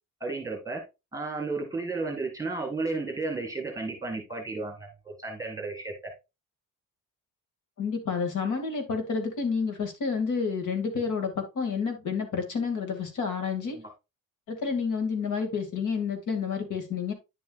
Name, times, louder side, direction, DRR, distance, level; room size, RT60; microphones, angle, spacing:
voice 1, 0.2-0.8 1.1-6.1 13.7-13.9, right 3 dB, 10° right, 2 dB, 1.7 m, -33 dB
voice 2, 7.8-13.8 14.5-17.1, left 5 dB, 60° left, 5 dB, 2.5 m, -29 dB
9.9 x 7.1 x 2.5 m, 0.25 s
cardioid pair, 140°, 34 cm